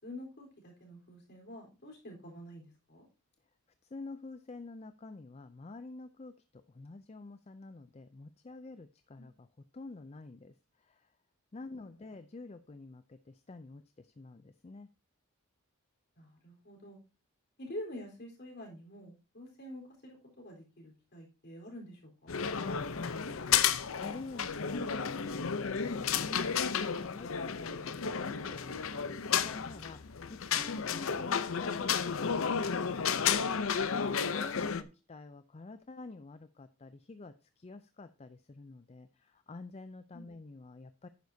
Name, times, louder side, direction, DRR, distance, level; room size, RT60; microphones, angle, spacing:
voice 1, 0.0-3.1 9.2-9.3 11.7-11.9 16.2-17.0 17.6-22.3 40.1-40.3, left 1 dB, 50° left, 1 dB, 4.0 m, -48 dB
voice 2, 3.9-9.5 9.7-11.1 11.5-14.9 22.5-34.0 34.3-41.1, left 3 dB, 30° left, 11 dB, 0.4 m, -48 dB
sound 1, 22.3-34.8, left 7 dB, 65° left, 0.6 m, -32 dB
10.5 x 9.4 x 2.7 m, 0.31 s
head